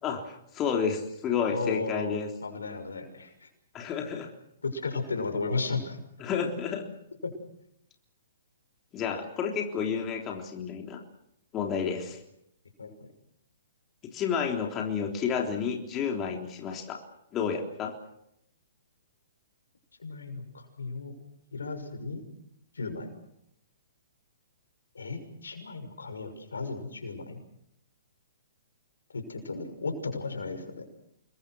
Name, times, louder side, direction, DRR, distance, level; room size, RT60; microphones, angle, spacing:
voice 1, 0.0-2.3 3.7-4.3 6.2-6.8 8.9-11.0 11.5-12.2 14.1-17.0 17.3-17.9, left 6 dB, 25° left, 2 dB, 3.5 m, -30 dB
voice 2, 1.5-3.5 4.6-6.0 7.2-7.3 12.8-12.9 20.0-21.1 21.5-22.2 22.7-23.1 24.9-27.4 29.1-30.8, left 3 dB, 85° left, 6 dB, 6.3 m, -34 dB
28.0 x 22.0 x 6.4 m, 0.80 s
hypercardioid pair, 135°, 0 cm